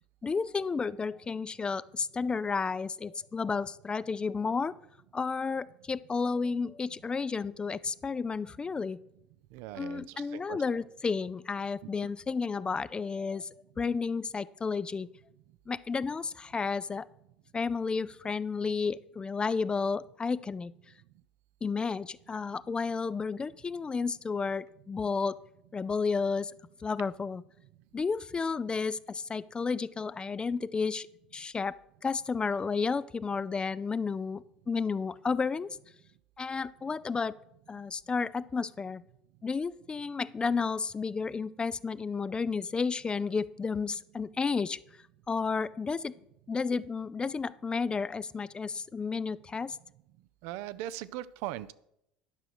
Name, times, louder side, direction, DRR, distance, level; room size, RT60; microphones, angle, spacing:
voice 1, 0.2-4.7 5.1-9.0 9.8-13.5 13.8-15.1 15.7-17.1 17.5-20.7 21.6-25.4 25.7-26.5 26.8-27.4 27.9-31.1 31.3-35.8 36.4-37.4 37.7-39.0 39.4-44.8 45.3-46.1 46.5-49.8, left 5 dB, 20° left, 18 dB, 0.4 m, -32 dB
voice 2, 9.5-10.6 50.4-51.7, right 14 dB, 60° right, 16 dB, 0.5 m, -39 dB
10.5 x 5.9 x 6.3 m, 0.79 s
figure-of-eight pair, 70°, 4 cm